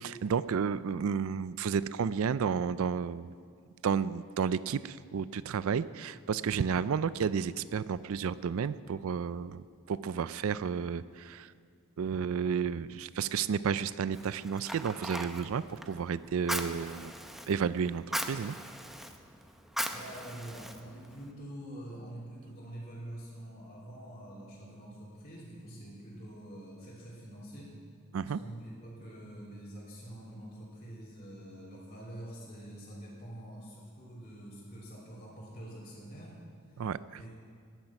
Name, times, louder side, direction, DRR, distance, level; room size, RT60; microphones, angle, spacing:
voice 1, 0.0-3.4 3.8-11.5 12.0-17.1 17.5-18.6 28.1-28.4 36.8-37.2, right 6 dB, 70° right, 16 dB, 0.4 m, -32 dB
Fire, 14.1-21.3, equal, ahead, 0.7 m, -40 dB
voice 2, 19.9-27.8 28.4-36.4 36.7-37.3, right 1 dB, 30° left, -10 dB, 3.5 m, -46 dB
18.5 x 10.5 x 5.9 m, 2.1 s
head